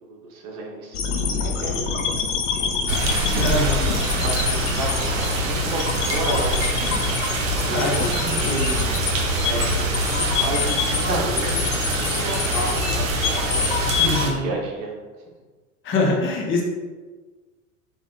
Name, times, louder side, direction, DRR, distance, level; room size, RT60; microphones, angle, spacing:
voice 1, 0.0-2.9 3.3-4.9 5.2-7.0 7.6-8.9 9.4-11.6 12.1-13.7 14.0-14.9 15.3-15.4, right 2 dB, 45° right, 0 dB, 0.9 m, -32 dB
sound 1, 0.9-14.2, left 5 dB, 65° left, 0.6 m, -27 dB
sound 2, 2.9-14.3, right 1 dB, 75° right, 0.7 m, -24 dB
voice 2, 3.3-4.0 7.7-8.9 14.0-14.5 15.8-16.6, left 2 dB, 30° left, -1 dB, 1.0 m, -24 dB
3.4 x 2.6 x 3.5 m, 1.3 s
figure-of-eight pair, 75°, 40 cm